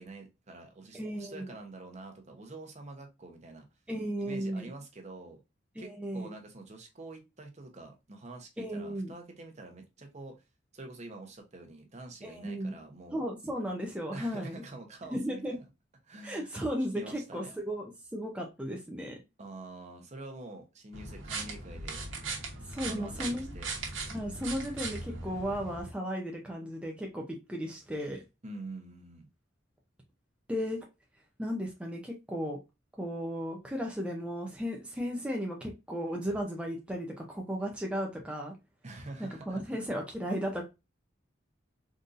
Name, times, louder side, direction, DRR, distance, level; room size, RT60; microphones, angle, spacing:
voice 1, 0.0-3.7 4.2-5.4 5.8-10.3 10.7-13.2 14.1-15.6 16.0-16.5 16.9-17.5 19.4-22.1 22.8-23.7 28.4-29.3 38.8-39.8, right 2 dB, 35° right, 0.8 m, -46 dB
voice 2, 0.9-1.5 3.9-4.7 5.8-6.3 8.6-9.1 12.2-12.8 13.1-14.6 15.1-15.6 16.2-19.2 22.6-23.5 24.1-28.2 30.5-30.8 31.4-32.6 33.0-38.5 39.2-40.7, equal, 5° right, 0.5 m, -35 dB
sound 1, 20.9-25.8, right 3 dB, 85° right, 1.0 m, -39 dB
3.8 x 2.6 x 2.5 m
head